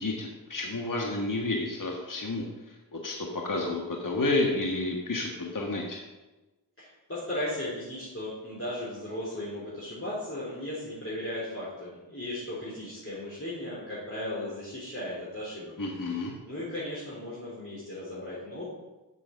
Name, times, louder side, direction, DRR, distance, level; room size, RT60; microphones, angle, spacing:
voice 1, 0.0-2.5 2.9-6.0 15.8-16.3, left 2 dB, 50° left, 0 dB, 1.6 m, -30 dB
voice 2, 6.8-18.6, left 1 dB, 35° left, -9 dB, 3.7 m, -36 dB
7.0 x 6.9 x 6.6 m, 1.1 s
cardioid pair, 40°, 41 cm